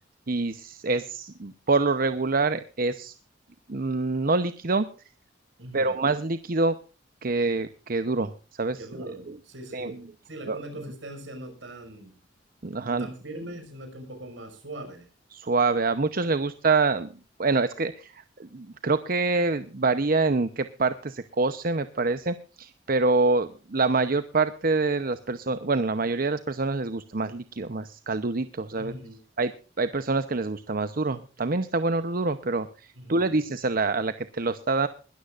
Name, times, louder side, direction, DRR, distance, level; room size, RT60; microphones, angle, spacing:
voice 1, 0.3-3.1 3.7-4.9 5.7-6.7 7.2-8.3 8.6-9.3 9.7-10.0 10.5-10.6 12.6-13.1 15.3-17.1 17.4-28.9 29.4-29.5 29.8-34.9, right 3 dB, 50° right, 11 dB, 0.8 m, -26 dB
voice 2, 5.6-6.0 8.8-10.0 10.3-12.1 12.8-15.1 28.8-29.2 32.9-33.4, right 1 dB, 75° right, 6 dB, 5.9 m, -41 dB
21.0 x 13.5 x 2.5 m, 0.35 s
head